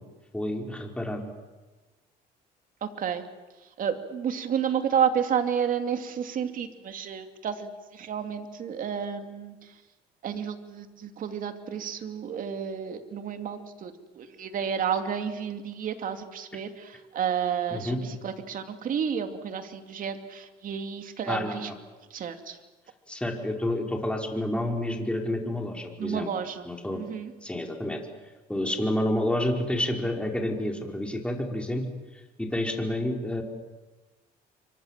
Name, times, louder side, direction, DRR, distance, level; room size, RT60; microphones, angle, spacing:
voice 1, 0.3-1.3 17.7-18.0 21.3-21.7 23.1-26.3 26.6-27.0 27.4-28.0 28.5-31.8 32.4-33.4, left 1 dB, 5° left, 2 dB, 4.8 m, -29 dB
voice 2, 2.8-3.3 3.6-9.8 10.2-21.7 22.1-22.6 26.0-27.3, right 8 dB, 55° right, 7 dB, 2.7 m, -31 dB
29.0 x 24.5 x 7.5 m, 1.2 s
cardioid pair, 110°, 17 cm